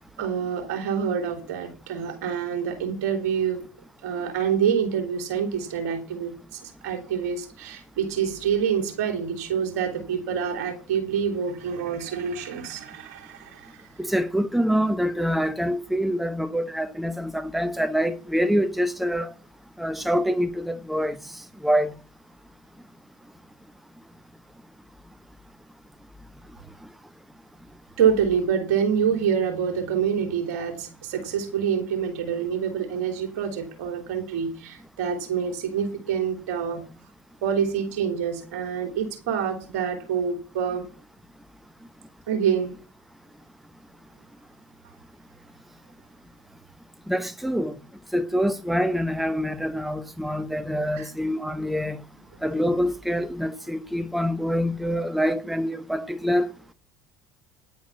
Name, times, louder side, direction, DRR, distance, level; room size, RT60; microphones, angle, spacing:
voice 1, 0.2-3.6 4.0-13.8 28.0-36.8 37.4-40.9 42.3-42.8 50.9-51.1, right 7 dB, 65° right, 3.2 m, -26 dB
voice 2, 14.0-19.3 19.8-22.0 47.1-47.8 48.1-52.0 52.4-56.5, equal, ahead, 0.9 m, -25 dB
10.5 x 9.4 x 5.6 m
figure-of-eight pair, 70°, 9 cm